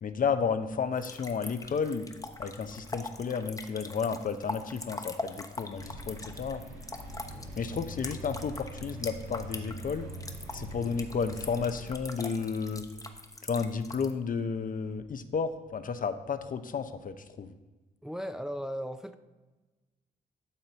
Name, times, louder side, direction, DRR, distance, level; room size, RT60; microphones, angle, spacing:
voice 1, 0.0-2.1 2.4-6.6 7.6-10.1 10.5-12.9 13.4-17.5, left 5 dB, 50° left, 10 dB, 0.7 m, -32 dB
sound 1, 0.9-14.1, left 2 dB, 20° left, 1.0 m, -42 dB
sound 2, 5.8-12.0, right 1 dB, 80° right, 1.5 m, -43 dB
voice 2, 18.0-19.2, equal, 5° right, 9 dB, 0.7 m, -37 dB
12.5 x 4.1 x 4.0 m, 1.2 s
supercardioid pair, 50°, 18 cm